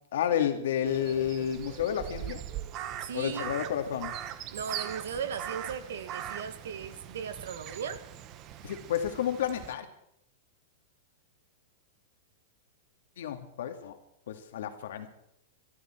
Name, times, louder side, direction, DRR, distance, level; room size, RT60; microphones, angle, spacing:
voice 1, 0.1-2.4 3.1-4.1 8.6-9.9 13.2-14.0 14.3-15.1, left 9 dB, 75° left, 7 dB, 2.1 m, -31 dB
Crow, 0.9-9.7, right 11 dB, 35° right, 1.1 m, -41 dB
voice 2, 3.0-3.5 4.5-8.0, right 7 dB, 80° right, 12 dB, 1.6 m, -37 dB
23.0 x 12.5 x 4.5 m, 0.76 s
hypercardioid pair, 135°, 0 cm